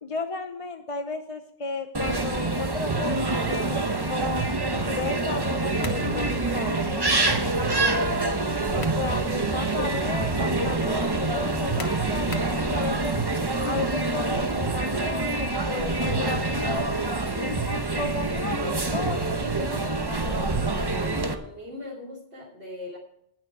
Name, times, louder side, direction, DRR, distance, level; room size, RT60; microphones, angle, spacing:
voice 1, 0.0-4.4 4.8-7.0 8.7-13.1 13.6-16.9 17.4-20.5, left 3 dB, 35° left, 6 dB, 0.7 m, -34 dB
sound 1, 1.9-21.3, right 2 dB, 20° right, 0.9 m, -26 dB
sound 2, 5.8-6.1 8.5-9.1 9.6-9.7 11.8-12.6, left 5 dB, 65° left, 1.5 m, -40 dB
sound 3, 5.9-12.4, equal, 45° right, 3.9 m, -38 dB
voice 2, 20.9-23.0, left 1 dB, 70° right, -7 dB, 3.1 m, -40 dB
19.5 x 6.5 x 4.7 m, 0.75 s
omnidirectional pair, 1.2 m